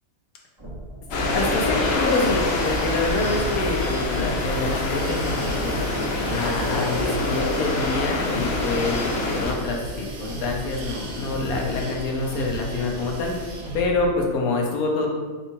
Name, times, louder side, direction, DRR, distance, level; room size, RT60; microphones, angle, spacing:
sound 1, 0.6-14.3, right 2 dB, 20° right, 1.0 m, -36 dB
sound 2, 1.1-9.5, left 2 dB, 55° left, 0.8 m, -25 dB
voice 1, 1.3-5.8 6.3-13.3 13.7-15.1, left 3 dB, 85° left, 0 dB, 1.3 m, -26 dB
sound 3, 1.8-13.8, right 2 dB, 75° right, 1.3 m, -41 dB
3.9 x 2.9 x 4.5 m, 1.3 s
omnidirectional pair, 1.5 m